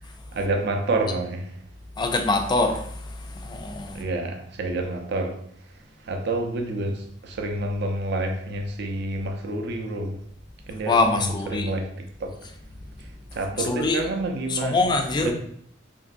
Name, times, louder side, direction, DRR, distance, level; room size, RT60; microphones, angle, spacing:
voice 1, 0.3-1.6 3.9-10.2 10.7-12.4 13.0-14.8 15.2-15.3, right 2 dB, 60° right, 0.4 m, -29 dB
voice 2, 2.0-4.0 10.9-11.7 13.7-14.0 14.5-15.3, left 3 dB, 25° left, 0.3 m, -24 dB
3.0 x 2.5 x 2.5 m
head